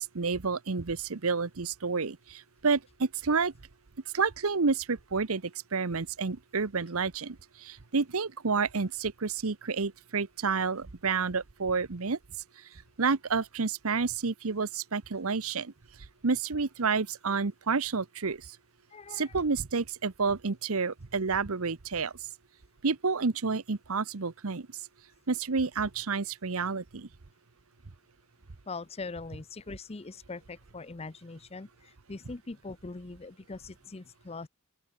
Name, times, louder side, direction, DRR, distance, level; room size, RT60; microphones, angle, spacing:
voice 1, 0.0-3.5 4.1-12.2 13.0-15.7 16.2-18.5 19.1-22.1 22.8-24.7 25.3-27.1, right 4 dB, 70° right, 0.9 m, -30 dB
voice 2, 18.9-19.3 28.7-34.5, left 3 dB, 25° left, 0.6 m, -42 dB
open air
head